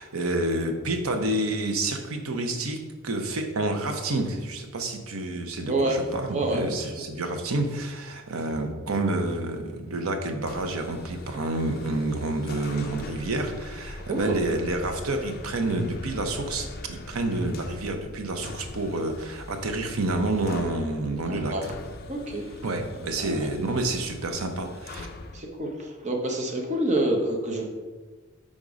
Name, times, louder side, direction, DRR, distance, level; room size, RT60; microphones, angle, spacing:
voice 1, 0.0-2.8 3.0-21.5 22.6-25.1, right 2 dB, 80° right, 5 dB, 0.8 m, -29 dB
voice 2, 5.6-6.0 6.3-6.9 14.1-14.3 21.3-21.6 22.1-22.6 23.2-23.5 25.3-27.7, right 1 dB, 35° right, 1 dB, 0.9 m, -27 dB
sound 1, 10.4-25.4, left 2 dB, 45° left, 0.5 m, -42 dB
5.4 x 3.7 x 5.0 m, 1.3 s
head